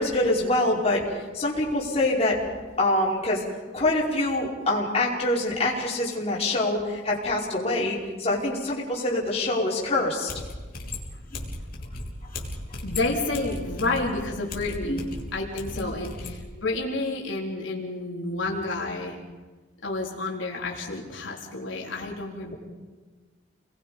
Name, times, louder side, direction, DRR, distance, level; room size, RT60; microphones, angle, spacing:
voice 1, 0.0-2.4 2.8-3.4 3.7-10.3 14.8-15.1 15.7-15.9 22.5-22.6, left 2 dB, 35° left, -5 dB, 5.3 m, -25 dB
sound 1, 10.3-16.4, left 2 dB, 50° left, 3.5 m, -36 dB
voice 2, 12.8-15.0 15.3-19.2 19.8-22.5, left 2 dB, 85° left, -2 dB, 3.8 m, -30 dB
30.0 x 21.5 x 5.3 m, 1.4 s
head